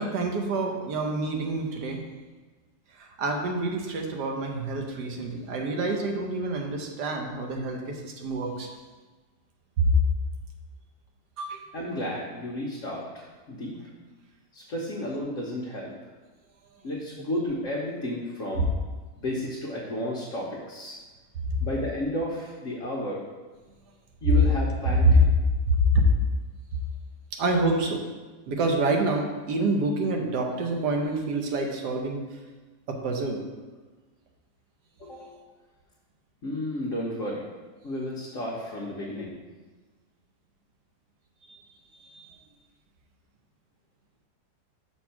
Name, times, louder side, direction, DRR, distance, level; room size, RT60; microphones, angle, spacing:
voice 1, 0.0-2.0 3.0-8.7 9.8-9.9 11.4-11.6 24.8-25.2 25.7-26.0 27.3-28.0 28.5-32.2 32.9-33.4 41.5-41.6 42.0-42.3, right 1 dB, 75° right, 2 dB, 1.5 m, -26 dB
voice 2, 11.7-13.8 14.5-15.9 16.8-18.7 19.2-21.0 21.6-23.2 24.2-25.2 35.0-35.4 36.4-37.5 37.8-39.4, left 1 dB, 55° left, -4 dB, 1.2 m, -32 dB
6.4 x 4.4 x 5.8 m, 1.3 s
omnidirectional pair, 1.8 m